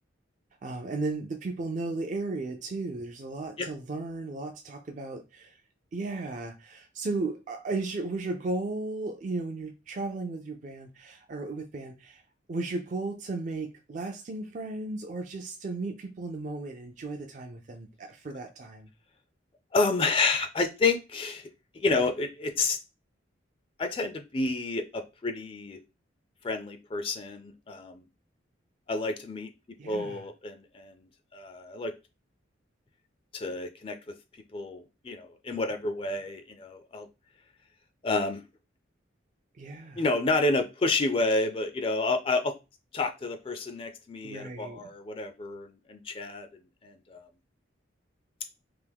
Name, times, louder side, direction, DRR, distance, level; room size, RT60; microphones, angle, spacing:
voice 1, 0.6-5.6 5.9-12.2 12.5-18.9 29.8-30.2 39.6-40.0 44.2-44.8, right 3 dB, 40° right, 0.4 m, -35 dB
voice 2, 19.7-21.5 21.7-22.8 23.8-25.8 26.4-28.0 28.9-29.5 29.9-30.9 31.3-31.9 33.3-34.0 34.5-37.1 38.0-38.4 40.0-42.5 42.9-46.5 46.8-47.2, left 3 dB, 30° left, 0.4 m, -29 dB
3.5 x 2.8 x 3.4 m
head